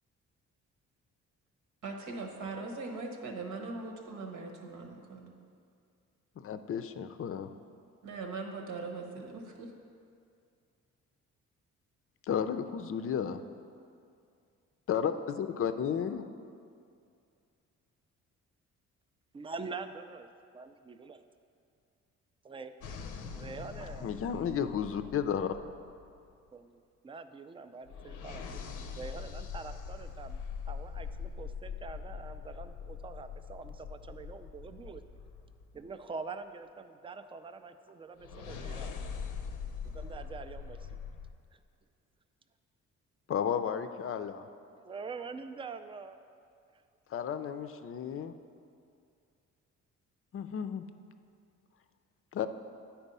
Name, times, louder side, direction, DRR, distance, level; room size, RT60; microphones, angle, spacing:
voice 1, 1.8-5.3 8.0-9.7, right 3 dB, 75° right, 3 dB, 1.2 m, -40 dB
voice 2, 6.4-7.5 12.2-13.4 14.9-16.2 24.0-25.5 43.3-44.5 47.1-48.3 50.3-50.8 52.3-52.5, left 8 dB, 45° left, 9 dB, 0.5 m, -33 dB
voice 3, 19.3-20.3 20.5-21.2 22.4-22.7 23.3-24.1 26.5-28.4 29.0-30.4 30.7-35.0 35.7-38.9 39.8-40.9 41.5-41.6 44.8-46.2, right 4 dB, 20° right, 9 dB, 0.4 m, -44 dB
sound 1, 22.8-26.3 27.9-35.9 38.2-41.3, left 6 dB, 90° left, 0.6 m, -42 dB
9.0 x 4.5 x 5.4 m, 2.4 s
cardioid pair, 90°, 30 cm